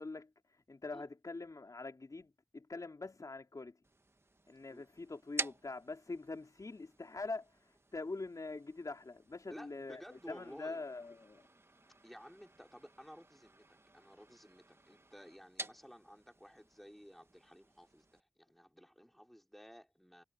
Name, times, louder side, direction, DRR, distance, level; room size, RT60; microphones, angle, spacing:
voice 1, 0.0-3.8 4.5-11.4, left 3 dB, 75° left, 4.4 m, -44 dB
sound 1, 3.8-18.2, right 2 dB, 45° right, 1.5 m, -50 dB
voice 2, 9.5-10.9 12.0-20.2, equal, 5° left, 4.8 m, -55 dB
wide cardioid pair, 45°, 6 cm